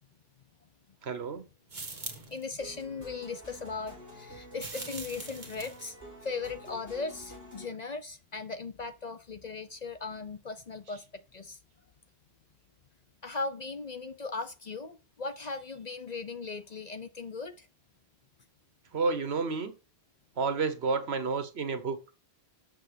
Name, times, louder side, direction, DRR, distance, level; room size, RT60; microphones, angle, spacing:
voice 1, 1.0-1.4 18.9-19.7 20.4-22.1, right 4 dB, 70° right, 1.3 m, -30 dB
sound 1, 1.7-2.4 4.6-5.9, right 3 dB, 45° right, 1.6 m, -42 dB
voice 2, 2.3-6.0 6.2-11.6 13.2-17.7, left 4 dB, 45° left, 0.7 m, -38 dB
sound 2, 2.6-7.7, equal, 15° left, 4.7 m, -49 dB
6.9 x 6.5 x 5.1 m
omnidirectional pair, 1.1 m